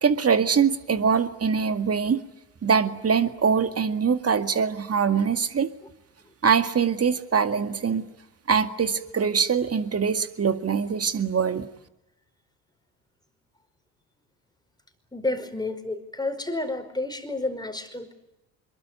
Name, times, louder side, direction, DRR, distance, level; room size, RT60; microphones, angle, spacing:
voice 1, 0.0-2.2 2.6-5.7 6.4-8.1 8.5-11.7, right 6 dB, 30° right, 10 dB, 2.0 m, -23 dB
voice 2, 15.1-18.1, left 2 dB, 10° left, 7 dB, 4.9 m, -30 dB
26.5 x 22.5 x 9.1 m, 0.94 s
figure-of-eight pair, 55°, 49 cm